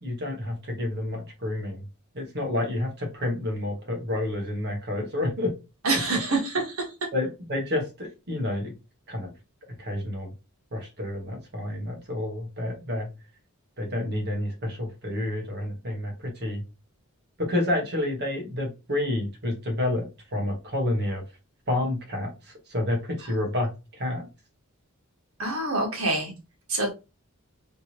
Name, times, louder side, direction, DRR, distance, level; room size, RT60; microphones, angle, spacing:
voice 1, 0.0-1.8 2.1-5.5 5.9-6.2 7.1-8.7 9.1-9.3 9.8-10.3 10.7-13.1 13.8-16.6 17.4-21.2 21.7-24.3, left 1 dB, 50° right, 2 dB, 1.2 m, -29 dB
voice 2, 5.8-6.9 25.4-26.3 26.7-26.9, right 2 dB, 70° right, 0 dB, 1.5 m, -26 dB
3.4 x 2.9 x 2.9 m, 0.28 s
head